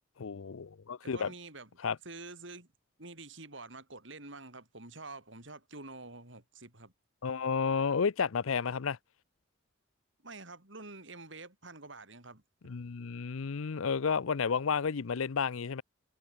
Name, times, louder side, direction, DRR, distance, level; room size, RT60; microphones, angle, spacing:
voice 1, 0.2-1.3 1.8-2.0 7.2-9.0 12.6-15.8, left 6 dB, 85° left, 0.6 m, -31 dB
voice 2, 1.1-1.7 2.0-2.7 3.0-6.9 10.2-12.4, right 3 dB, 65° right, 5.3 m, -47 dB
head